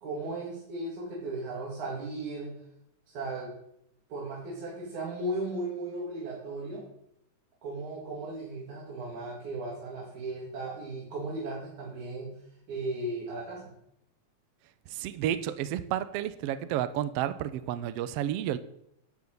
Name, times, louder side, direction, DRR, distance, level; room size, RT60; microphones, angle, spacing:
voice 1, 0.0-2.6 3.1-3.5 4.1-6.8 7.6-12.3 12.7-13.7, right 2 dB, 70° right, -5 dB, 3.7 m, -36 dB
voice 2, 14.9-18.6, right 11 dB, 90° right, 13 dB, 1.3 m, -31 dB
12.5 x 4.9 x 7.8 m, 0.74 s
omnidirectional pair, 3.5 m